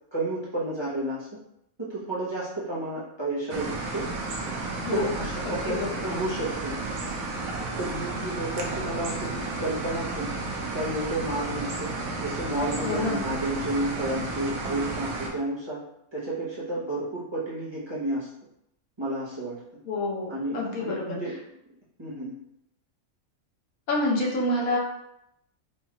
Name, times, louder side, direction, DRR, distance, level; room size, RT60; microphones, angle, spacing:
voice 1, 0.1-1.3 1.8-4.0 4.6-6.8 7.8-10.3 10.7-11.9 12.2-15.8 16.1-18.3 19.0-19.6 20.3-21.4 22.0-22.3, right 1 dB, 25° right, -8 dB, 0.7 m, -31 dB
sound 1, 3.5-15.3, right 2 dB, 85° right, 1.1 m, -32 dB
voice 2, 4.8-6.1 12.8-13.2 19.8-21.2 23.9-24.8, left 2 dB, 90° left, -2 dB, 1.4 m, -28 dB
4.3 x 2.3 x 2.9 m, 0.80 s
omnidirectional pair, 1.4 m